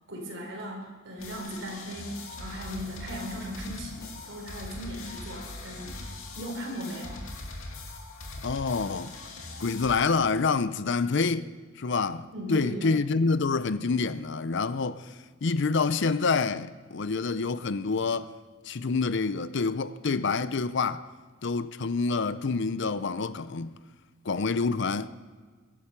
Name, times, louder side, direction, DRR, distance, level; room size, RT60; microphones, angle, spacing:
voice 1, 0.1-6.0 6.3-7.3 12.3-12.9, equal, 60° right, 4.7 m, -38 dB
sound 1, 1.2-10.0, left 2 dB, 80° left, 2.5 m, -41 dB
voice 2, 8.4-9.1 9.6-11.5 11.8-15.1 15.4-18.3 18.7-21.0 21.4-23.8 24.2-25.1, left 4 dB, 60° left, 0.6 m, -27 dB
22.0 x 11.5 x 5.9 m
head